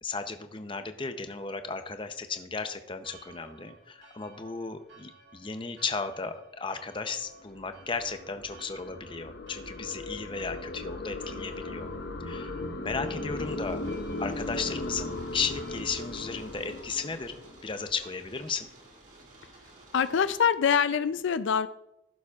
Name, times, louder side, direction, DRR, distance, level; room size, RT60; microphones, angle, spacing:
voice 1, 0.0-12.0 12.2-13.8 14.2-18.7, left 4 dB, 25° left, 8 dB, 0.6 m, -35 dB
Church bell, 3.0-18.1, right 3 dB, 70° right, 2.8 m, -56 dB
sound 1, 7.3-17.9, left 2 dB, 55° left, 0.8 m, -37 dB
sound 2, 13.4-20.4, right 2 dB, 40° right, 2.1 m, -54 dB
voice 2, 19.9-21.7, left 7 dB, 70° left, 13 dB, 0.4 m, -24 dB
15.5 x 7.2 x 2.4 m, 0.88 s
head